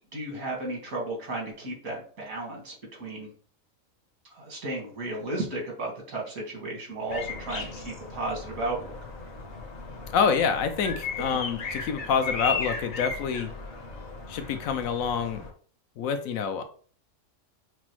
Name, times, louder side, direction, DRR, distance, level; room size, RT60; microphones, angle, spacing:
voice 1, 0.1-3.3 4.3-9.0, right 2 dB, 90° right, -2 dB, 2.1 m, -34 dB
sound 1, 7.1-15.5, left 4 dB, 55° left, 1.1 m, -36 dB
voice 2, 10.1-13.5 14.3-15.4 16.0-16.6, left 6 dB, 75° left, 8 dB, 1.0 m, -27 dB
5.9 x 2.0 x 3.0 m, 0.44 s
omnidirectional pair, 1.5 m